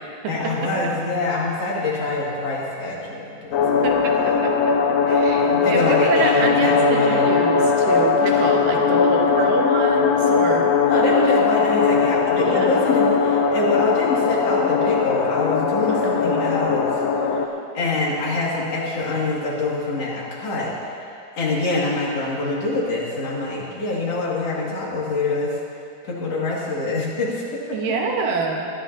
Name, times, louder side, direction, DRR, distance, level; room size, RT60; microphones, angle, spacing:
voice 1, 0.3-4.4 5.3-7.3 8.3-8.4 10.8-16.9 17.7-20.7 21.4-25.5 26.0-27.4, left 2 dB, 50° left, -5 dB, 3.2 m, -25 dB
sound 1, 3.5-17.5, left 5 dB, 80° left, 1.5 m, -19 dB
voice 2, 3.8-10.7 12.4-12.7 15.9-16.4 27.7-28.7, right 4 dB, 80° right, 1 dB, 2.9 m, -27 dB
21.0 x 13.0 x 2.8 m, 2.5 s
omnidirectional pair, 3.9 m